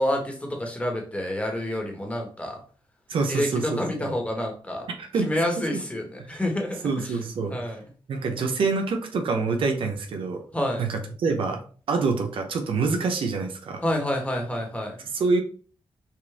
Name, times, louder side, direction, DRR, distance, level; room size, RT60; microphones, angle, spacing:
voice 1, 0.0-2.6 3.3-4.9 5.1-7.2 7.5-7.8 10.5-10.9 13.8-15.0, left 1 dB, 15° left, 1 dB, 1.5 m, -28 dB
voice 2, 3.1-4.1 5.0-5.3 5.6-5.8 6.8-7.6 8.1-10.4 10.8-13.8 15.1-15.4, right 4 dB, 75° right, 4 dB, 0.9 m, -26 dB
5.6 x 2.6 x 3.5 m, 0.41 s
cardioid pair, 100°, 9 cm